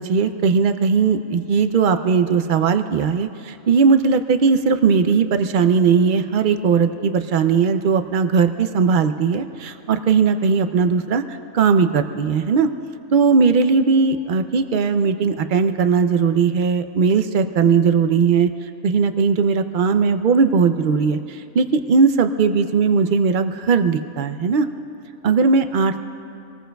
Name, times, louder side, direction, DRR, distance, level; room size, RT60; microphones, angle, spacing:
voice 1, 0.0-12.7 13.1-18.5 18.8-24.7 25.2-26.0, right 5 dB, 75° right, 8 dB, 0.4 m, -18 dB
26.0 x 19.0 x 2.3 m, 2.7 s
omnidirectional pair, 1.5 m